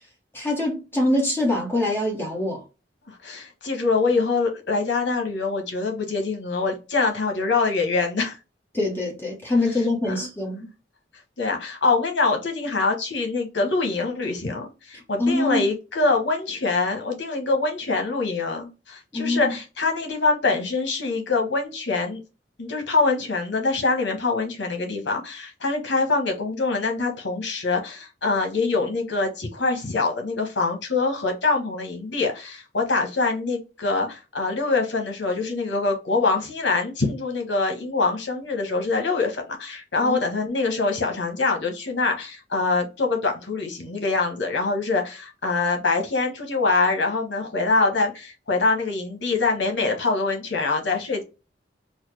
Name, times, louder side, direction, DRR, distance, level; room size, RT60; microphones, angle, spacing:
voice 1, 0.3-2.6 8.7-10.7 15.2-15.6 19.1-19.4 40.0-40.2, left 1 dB, 15° left, 1.1 m, -24 dB
voice 2, 3.1-8.4 9.7-10.3 11.4-22.2 22.6-51.2, left 3 dB, 80° left, 1.2 m, -24 dB
4.1 x 2.2 x 3.2 m
head